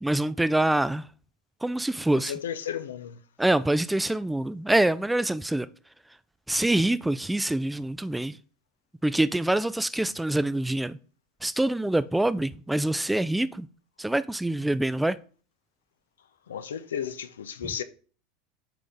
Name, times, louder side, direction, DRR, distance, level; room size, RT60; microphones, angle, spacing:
voice 1, 0.0-1.0 1.6-2.3 3.4-5.7 6.5-8.4 9.0-11.0 11.4-13.7 14.0-15.2, right 1 dB, 5° right, 0.4 m, -25 dB
voice 2, 2.1-3.2 10.0-10.2 16.5-17.8, left 8 dB, 85° left, 0.6 m, -34 dB
9.2 x 3.8 x 3.5 m
hypercardioid pair, 90°, 0 cm